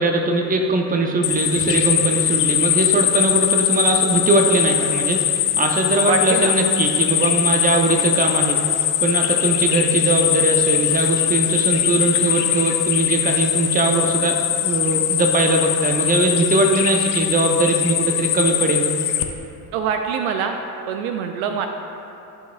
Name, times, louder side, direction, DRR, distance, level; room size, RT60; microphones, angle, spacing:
voice 1, 0.0-18.9, right 2 dB, 15° right, 3 dB, 0.9 m, -20 dB
sound 1, 1.2-19.2, left 11 dB, 75° left, 0.7 m, -21 dB
voice 2, 6.0-6.5 19.7-20.6 20.9-21.7, right 6 dB, 60° right, 5 dB, 0.6 m, -24 dB
11.0 x 6.1 x 2.4 m, 2.8 s
figure-of-eight pair, 55°, 49 cm